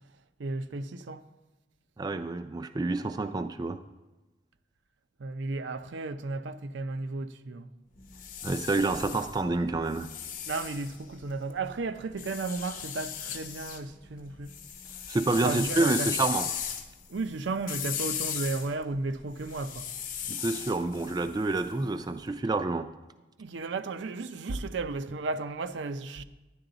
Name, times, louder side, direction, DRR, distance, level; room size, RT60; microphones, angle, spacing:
voice 1, 0.4-1.2 5.2-7.7 10.5-14.6 15.4-16.1 17.1-19.9 23.4-26.2, right 3 dB, 80° right, 0.5 m, -34 dB
voice 2, 2.0-3.8 8.4-10.1 15.1-16.5 20.3-22.9, right 3 dB, 20° right, 0.3 m, -28 dB
sound 1, 8.0-11.5 12.2-13.8 14.2-22.1, left 8 dB, 45° left, 0.8 m, -37 dB
10.5 x 10.5 x 3.9 m
head